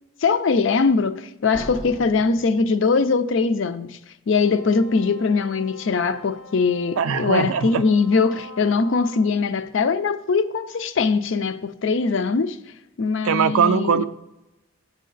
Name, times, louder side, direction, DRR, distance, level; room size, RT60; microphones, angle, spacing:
voice 1, 0.2-4.0 4.3-12.6 13.0-14.1, left 4 dB, 65° left, 0.4 m, -21 dB
Slam, 1.5-3.4, right 1 dB, 25° right, 0.4 m, -38 dB
Wind instrument woodwind instrument, 4.3-9.4, left 1 dB, 90° left, 0.9 m, -44 dB
voice 2, 7.0-7.8 13.2-14.1, right 7 dB, 85° right, 0.4 m, -20 dB
8.3 x 5.6 x 3.9 m
head